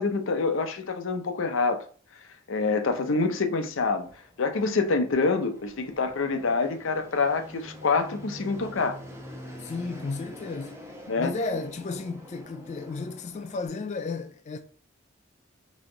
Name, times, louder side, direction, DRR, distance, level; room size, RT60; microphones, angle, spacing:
voice 1, 0.0-1.8 2.5-4.1 4.4-9.0 11.1-11.3, left 4 dB, 80° left, 0.6 m, -26 dB
Fixed-wing aircraft airplane, 3.5-13.7, equal, 15° right, 0.8 m, -46 dB
voice 2, 9.6-10.8 11.2-14.6, left 3 dB, 35° left, 0.3 m, -33 dB
4.1 x 2.9 x 3.7 m
head